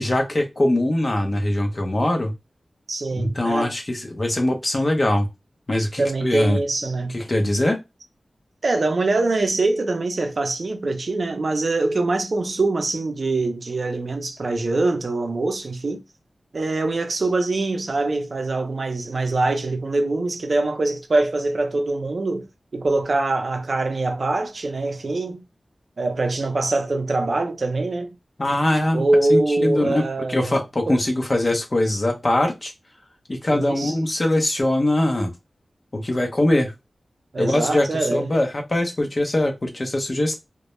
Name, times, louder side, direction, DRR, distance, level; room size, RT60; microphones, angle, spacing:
voice 1, 0.0-2.3 3.2-5.3 5.7-6.6 7.1-7.8 28.4-29.0 29.3-30.0 30.3-32.7 33.3-35.3 35.9-36.7 37.4-40.4, left 1 dB, 40° left, 0.5 m, -22 dB
voice 2, 2.9-3.7 6.0-7.2 8.6-16.0 16.5-25.4 26.0-28.1 28.9-30.6 30.9-31.0 33.5-33.9 37.3-38.4, right 2 dB, 65° right, 0.5 m, -23 dB
2.1 x 2.0 x 2.9 m
wide cardioid pair, 75°, 0 cm